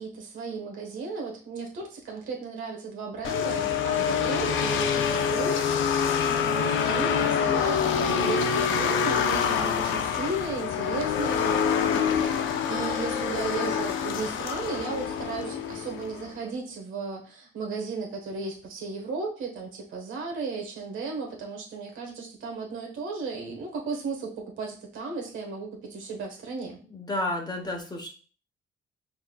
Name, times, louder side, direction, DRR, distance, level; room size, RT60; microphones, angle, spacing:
voice 1, 0.0-5.8 6.2-11.5 12.3-26.8, right 4 dB, 80° right, 1 dB, 1.4 m, -35 dB
sound 1, 3.2-16.3, left 7 dB, 75° left, 0.6 m, -26 dB
voice 2, 26.8-28.1, left 1 dB, 20° left, 2 dB, 1.0 m, -31 dB
5.6 x 2.9 x 2.3 m, 0.39 s
cardioid pair, 90°, 20 cm